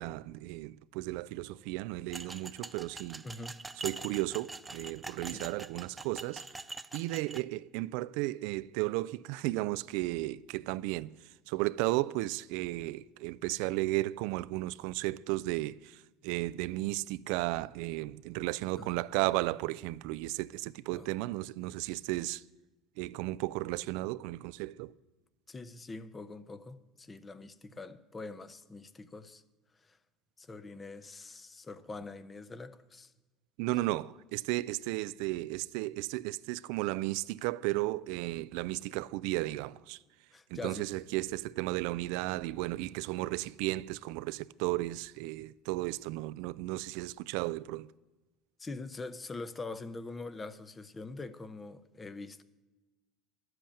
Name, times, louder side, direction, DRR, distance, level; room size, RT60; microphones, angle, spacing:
voice 1, 0.0-3.2 3.8-6.4 6.9-11.1 11.5-22.4 23.0-24.9 33.6-40.0 40.5-47.9, right 18 dB, 75° right, 0.3 m, -34 dB
sound 1, 2.1-7.4, right 3 dB, 15° right, 0.4 m, -44 dB
voice 2, 3.2-3.6 5.3-5.5 18.8-18.9 20.9-21.1 25.5-29.4 29.8-30.0 30.4-33.1 40.3-40.9 48.6-52.4, left 3 dB, 20° left, 0.7 m, -44 dB
12.0 x 7.8 x 8.7 m
cardioid pair, 125°, 0 cm